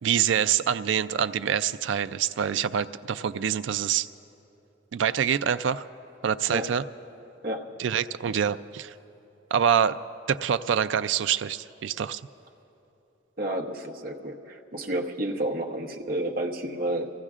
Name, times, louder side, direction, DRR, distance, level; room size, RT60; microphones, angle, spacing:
voice 1, 0.0-4.1 4.9-5.9 6.2-6.8 7.8-8.9 9.5-10.0 10.3-12.2, right 8 dB, 75° right, 13 dB, 0.4 m, -25 dB
voice 2, 13.4-17.1, right 1 dB, 50° right, 0 dB, 1.0 m, -30 dB
28.5 x 16.0 x 2.4 m, 3.0 s
head